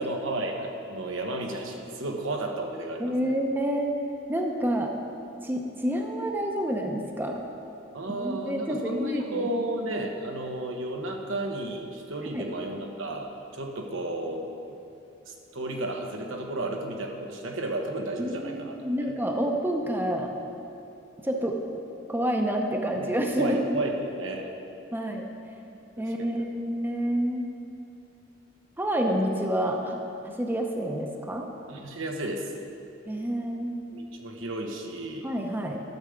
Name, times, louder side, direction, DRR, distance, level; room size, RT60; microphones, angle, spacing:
voice 1, 0.0-3.3 7.9-14.5 15.3-18.8 19.1-19.2 23.0-23.1 23.4-24.5 26.0-26.3 31.7-32.5 33.9-35.3, right 2 dB, 80° right, 2 dB, 1.1 m, -33 dB
voice 2, 3.0-3.9 4.3-4.9 5.4-7.4 8.1-9.5 12.3-12.4 18.2-20.3 21.2-21.6 22.1-23.6 24.9-25.2 26.0-27.5 28.8-30.0 30.2-31.5 33.1-33.8 35.2-35.8, equal, 10° right, 2 dB, 0.7 m, -28 dB
12.5 x 7.0 x 5.1 m, 2.8 s
head